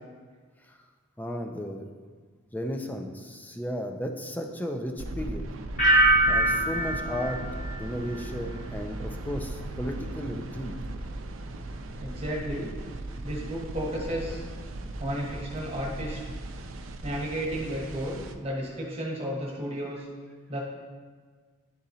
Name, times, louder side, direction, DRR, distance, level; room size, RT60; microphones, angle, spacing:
voice 1, 1.2-1.9 2.5-5.5 6.3-7.4 7.8-10.7, equal, 10° left, 3 dB, 0.4 m, -34 dB
sound 1, 5.0-18.3, right 2 dB, 80° right, 0.5 m, -37 dB
sound 2, 5.8-8.6 8.9-9.4, right 1 dB, 40° left, 1.2 m, -25 dB
voice 2, 12.0-12.7 13.2-14.4 15.0-16.2 17.0-20.0 20.5-20.6, equal, 30° right, -4 dB, 1.2 m, -33 dB
11.0 x 3.9 x 2.7 m, 1.5 s
head